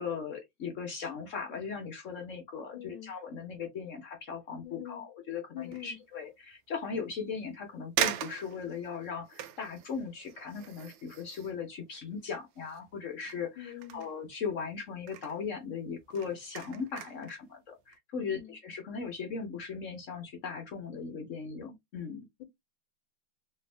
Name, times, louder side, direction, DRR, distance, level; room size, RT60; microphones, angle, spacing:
voice 1, 0.0-22.2, left 5 dB, 65° left, 0.7 m, -38 dB
voice 2, 2.7-3.1 4.6-5.0 5.5-6.0 13.6-14.0 18.2-18.6, left 11 dB, 80° left, 1.4 m, -44 dB
sound 1, 5.6-6.0 6.5-6.6 7.4-7.5 8.0-13.0 13.2-14.7 15.0-15.4 15.9-17.4 17.8-18.0, right 11 dB, 80° right, 1.4 m, -39 dB
3.4 x 2.6 x 3.3 m
omnidirectional pair, 2.2 m